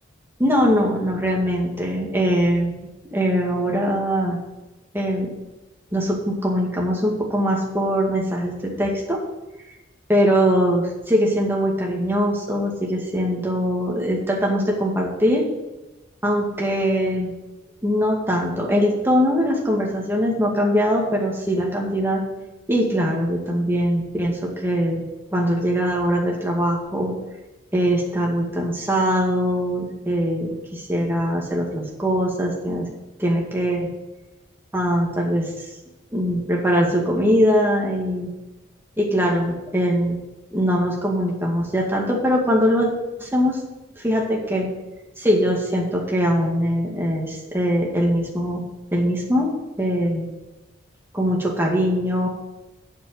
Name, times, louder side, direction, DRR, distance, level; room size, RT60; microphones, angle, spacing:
voice 1, 0.4-2.7 3.0-4.4 4.9-5.3 5.9-9.2 10.1-15.4 16.2-17.3 17.8-22.2 22.7-25.0 25.3-27.1 27.7-32.9 33.2-33.9 34.7-35.7 36.1-38.3 39.0-40.2 40.5-42.9 43.2-43.6 44.0-44.7 45.2-48.6 48.9-49.5 49.8-50.3 51.1-52.3, equal, 10° right, -2 dB, 2.1 m, -22 dB
8.0 x 7.4 x 7.9 m, 1.1 s
head